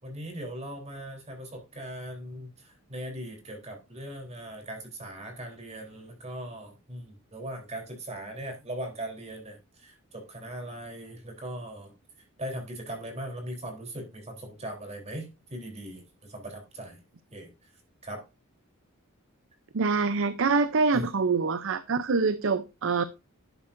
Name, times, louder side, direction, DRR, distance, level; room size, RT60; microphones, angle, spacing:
voice 1, 0.0-11.9 12.4-17.0 17.3-17.5 18.0-18.2 20.9-21.1, right 1 dB, 30° right, 3.6 m, -39 dB
voice 2, 19.7-23.0, right 4 dB, 65° right, 0.6 m, -25 dB
11.0 x 8.7 x 2.6 m
head